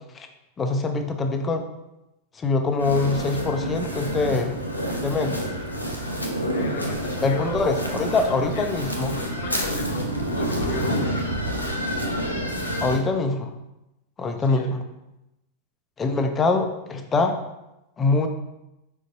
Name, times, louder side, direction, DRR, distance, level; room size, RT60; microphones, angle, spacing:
voice 1, 0.6-1.7 2.4-4.6 5.0-5.4 7.2-9.1 12.8-13.6 14.2-14.8 16.0-17.4 18.0-18.3, left 3 dB, 20° left, 6 dB, 0.5 m, -24 dB
sound 1, 2.8-13.0, equal, 85° left, 0.6 m, -28 dB
voice 2, 6.5-8.9 9.1-10.1 10.3-11.4 14.4-14.7, left 4 dB, 50° left, 2 dB, 0.8 m, -36 dB
5.2 x 3.9 x 2.6 m, 0.91 s
figure-of-eight pair, 90°, 0 cm